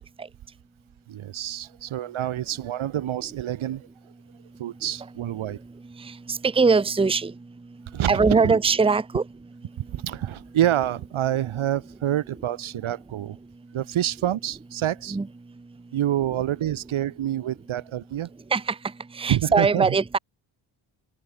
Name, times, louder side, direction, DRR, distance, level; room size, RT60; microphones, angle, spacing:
voice 1, 1.1-3.9 4.6-5.6 7.9-8.6 9.9-13.4 13.7-15.2 15.9-18.3 19.3-19.9, right 12 dB, 70° right, 1.2 m, -27 dB
voice 2, 6.0-7.3 8.1-9.2 15.1-15.3 18.5-18.8 19.1-20.2, right 4 dB, 10° right, 0.7 m, -21 dB
open air
cardioid pair, 55°, 50 cm